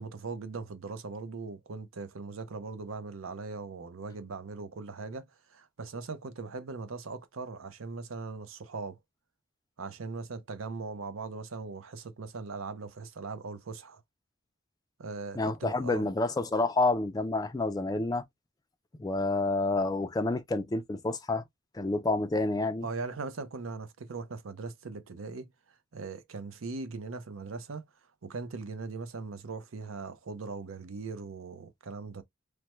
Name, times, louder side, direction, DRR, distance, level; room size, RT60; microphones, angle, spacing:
voice 1, 0.0-5.3 5.5-9.0 9.8-14.0 15.0-16.1 22.8-25.5 25.9-27.8 28.2-32.2, right 4 dB, 85° right, 0.6 m, -40 dB
voice 2, 15.4-18.2 19.0-21.4 21.7-22.9, left 2 dB, 20° left, 0.3 m, -29 dB
3.3 x 2.1 x 3.0 m
head